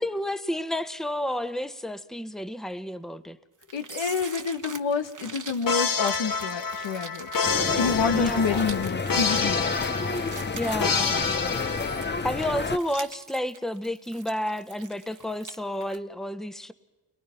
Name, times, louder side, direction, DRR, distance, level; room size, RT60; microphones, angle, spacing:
voice 1, 0.0-3.4 8.1-8.7 10.5-11.2 12.2-16.7, left 1 dB, ahead, 1.1 m, -31 dB
sound 1, 3.6-15.6 15.8-16.0, right 5 dB, 40° right, 1.4 m, -43 dB
voice 2, 3.7-7.3 7.8-9.7, left 5 dB, 80° left, 1.4 m, -28 dB
sound 2, 5.7-12.5, left 5 dB, 50° left, 1.1 m, -28 dB
sound 3, 7.4-12.8, left 4 dB, 25° left, 0.7 m, -30 dB
29.5 x 22.0 x 5.8 m
cardioid pair, 65°, 45 cm